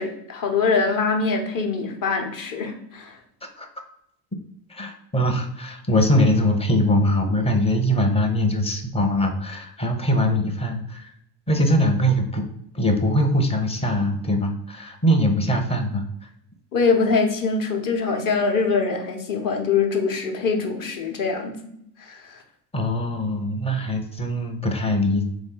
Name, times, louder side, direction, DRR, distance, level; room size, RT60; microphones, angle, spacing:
voice 1, 0.0-3.2 16.7-21.7 22.0-22.4, left 4 dB, 40° left, 3 dB, 1.0 m, -23 dB
voice 2, 4.7-11.1 11.5-12.4 12.7-16.0 22.7-25.2, equal, 10° left, 4 dB, 0.6 m, -22 dB
3.8 x 2.6 x 3.8 m, 0.76 s
hypercardioid pair, 70°, 50 cm